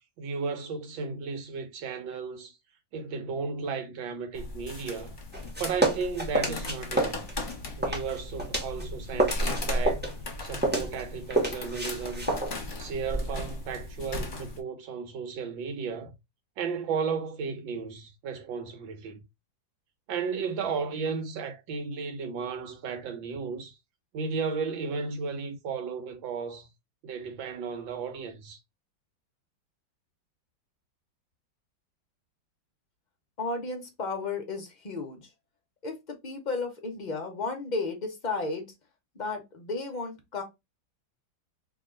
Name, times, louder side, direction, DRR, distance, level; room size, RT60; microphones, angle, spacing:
voice 1, 0.2-2.5 2.9-5.2 5.6-7.3 7.8-10.0 10.4-12.3 12.8-16.1 16.6-19.2 20.1-23.7 24.1-26.7 27.0-28.6, right 5 dB, 90° right, 1.6 m, -34 dB
sound 1, 4.3-14.6, left 1 dB, 35° left, 0.8 m, -36 dB
sound 2, 5.3-8.9 9.1-13.6, right 2 dB, 15° right, 0.3 m, -30 dB
voice 2, 33.4-35.2 35.8-36.0 36.2-38.7 39.2-40.4, left 3 dB, 55° left, 0.5 m, -33 dB
3.0 x 2.9 x 3.7 m
omnidirectional pair, 2.0 m